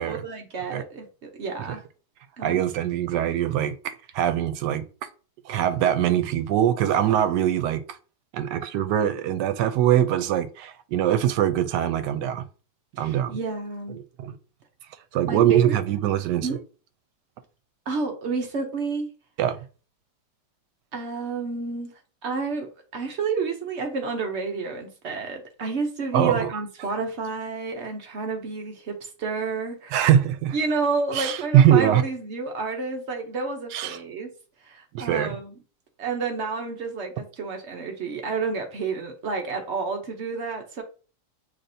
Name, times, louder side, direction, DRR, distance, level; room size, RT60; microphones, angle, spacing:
voice 1, 0.0-1.8 2.4-2.6 12.9-14.0 15.3-15.8 16.4-16.6 17.9-19.1 20.9-21.9 22.2-30.1 30.5-34.3 34.6-35.5 36.0-40.8, right 4 dB, 55° right, 0.8 m, -30 dB
voice 2, 2.4-4.8 5.5-7.8 8.3-12.4 13.0-13.4 13.9-14.3 15.1-16.6 19.4-19.6 26.1-26.5 29.9-30.6 31.1-32.0 33.7-34.0 34.9-35.3, right 10 dB, 85° right, 1.2 m, -22 dB
5.8 x 3.3 x 2.6 m
omnidirectional pair, 1.8 m